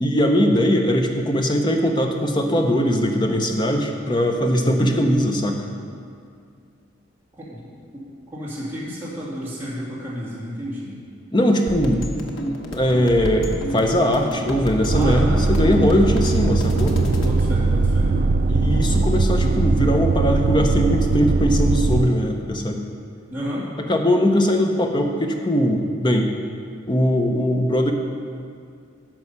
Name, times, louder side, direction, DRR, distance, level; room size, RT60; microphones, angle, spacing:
voice 1, 0.0-5.7 11.3-17.0 18.5-22.8 23.9-26.3 26.9-27.9, equal, 25° left, 3 dB, 0.7 m, -20 dB
voice 2, 4.4-4.9 7.4-7.6 7.9-8.0 8.3-10.9 14.9-16.2 17.2-18.1 23.3-23.7, equal, 10° right, -9 dB, 2.3 m, -32 dB
sound 1, 11.7-17.3, equal, 85° left, 1.1 m, -30 dB
sound 2, 14.9-22.1, right 3 dB, 45° right, 0.3 m, -20 dB
11.0 x 6.2 x 5.5 m, 2.3 s
head